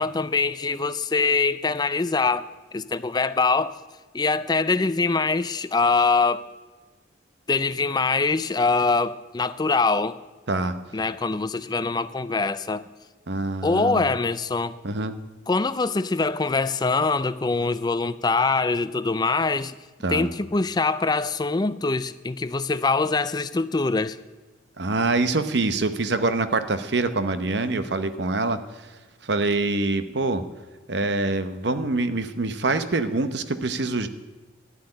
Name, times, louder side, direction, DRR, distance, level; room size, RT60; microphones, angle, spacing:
voice 1, 0.0-3.8 4.1-6.4 7.5-10.2 10.9-12.8 13.6-14.8 15.5-19.8 20.1-24.2, left 4 dB, 20° left, 0.4 m, -23 dB
voice 2, 13.3-14.1 14.8-15.2 20.0-20.3 24.8-28.9 29.2-30.4 30.9-34.1, right 2 dB, 60° right, 0.9 m, -25 dB
12.5 x 7.7 x 9.7 m
head